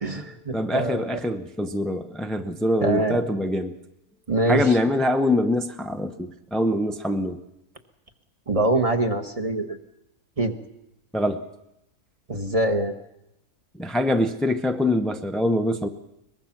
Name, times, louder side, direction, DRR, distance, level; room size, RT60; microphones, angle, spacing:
voice 1, 0.0-1.2 2.8-3.2 4.3-4.7 8.5-9.8 10.4-10.6 12.3-12.9, right 2 dB, 25° right, 7 dB, 1.3 m, -24 dB
voice 2, 0.5-3.7 4.5-7.4 11.1-11.4 13.8-15.9, left 1 dB, ahead, 6 dB, 0.4 m, -24 dB
22.5 x 20.5 x 5.9 m, 0.87 s
omnidirectional pair, 1.7 m